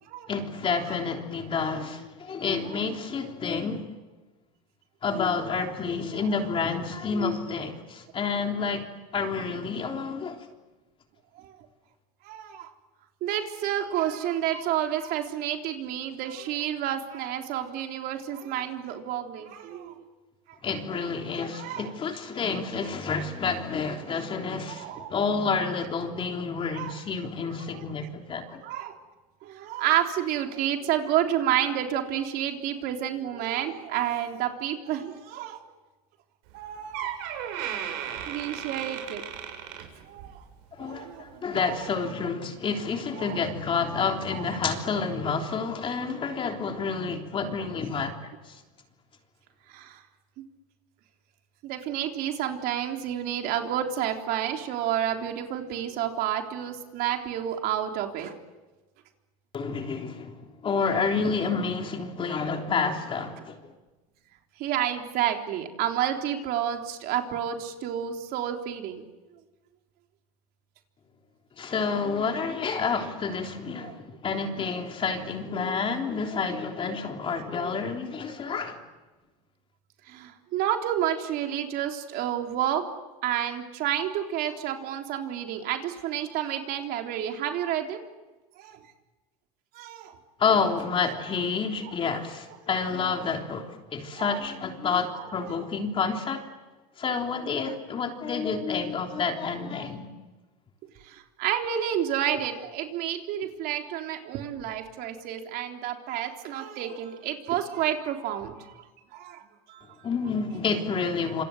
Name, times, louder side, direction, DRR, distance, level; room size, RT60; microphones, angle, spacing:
voice 1, 0.3-3.9 5.0-8.9 9.1-10.5 20.6-28.6 40.7-48.6 59.5-63.7 71.6-78.8 90.4-96.5 97.0-100.1 110.0-111.4, left 5 dB, 25° left, 3 dB, 3.5 m, -29 dB
voice 2, 12.2-12.7 13.2-20.0 20.5-20.6 21.5-21.9 24.7-25.2 26.7-27.0 27.7-27.9 28.6-29.0 29.4-35.6 36.5-37.1 38.3-39.2 40.1-40.4 40.8-41.9 43.1-43.4 44.3-44.4 49.7-50.0 50.4-50.5 51.6-58.3 64.6-69.0 77.3-77.6 80.1-82.9 83.2-88.0 88.6-88.8 89.7-90.2 91.0-91.1 91.8-92.0 93.0-93.3 94.2-94.4 95.1-95.6 101.0-108.8 109.1-109.9, right 10 dB, 55° right, 3 dB, 3.7 m, -30 dB
Door, 36.5-36.6 36.9-40.4 40.8-41.1 41.8-41.9, right 9 dB, 70° right, 7.4 m, -35 dB
27.0 x 27.0 x 8.0 m, 1.2 s
supercardioid pair, 140°, 20 cm